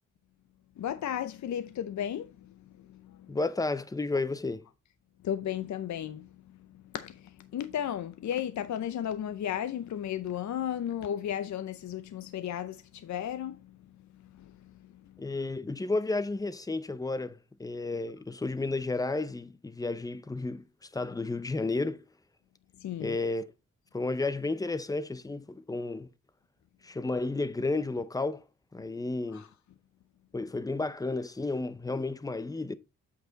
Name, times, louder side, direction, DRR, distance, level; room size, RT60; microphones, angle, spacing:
voice 1, 0.8-3.4 5.2-6.3 6.7-13.8 14.3-14.9 22.8-23.2 29.3-29.5, left 10 dB, 60° left, 0.6 m, -35 dB
voice 2, 3.3-4.6 15.2-22.0 23.0-23.5 23.9-26.1 26.8-28.4 28.7-29.5 30.3-32.8, left 3 dB, 10° left, 0.6 m, -32 dB
8.3 x 4.8 x 3.9 m
cardioid pair, 90°, 33 cm